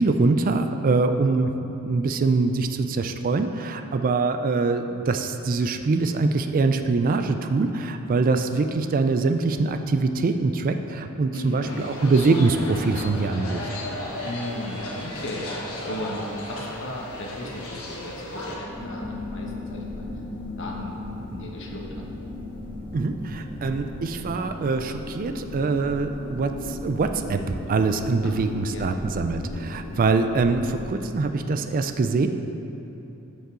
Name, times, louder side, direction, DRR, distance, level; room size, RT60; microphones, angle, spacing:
voice 1, 0.0-13.7 22.9-32.3, right 3 dB, 40° right, 8 dB, 0.4 m, -24 dB
voice 2, 11.3-11.7 14.2-15.5 15.8-16.2 16.5-20.1 20.6-21.0 21.3-22.0 28.2-28.4 28.7-29.0, left 1 dB, 60° left, -1 dB, 1.2 m, -36 dB
sound 1, 11.6-18.6, left 1 dB, 75° left, 1.4 m, -35 dB
sound 2, 18.7-30.8, left 1 dB, 25° left, 1.6 m, -36 dB
12.5 x 5.4 x 3.8 m, 3.0 s
head